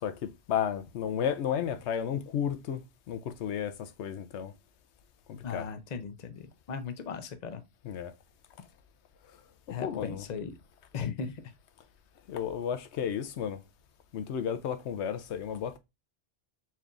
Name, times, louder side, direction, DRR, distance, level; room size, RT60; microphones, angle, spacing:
voice 1, 0.0-2.8 3.1-4.5 5.3-5.7 7.8-8.1 9.8-10.3 12.3-13.6 14.1-15.8, left 8 dB, 85° left, 0.9 m, -33 dB
voice 2, 5.4-7.6 9.7-10.6 10.9-11.4, left 6 dB, 45° left, 0.7 m, -37 dB
4.3 x 3.4 x 2.4 m
omnidirectional pair, 1.1 m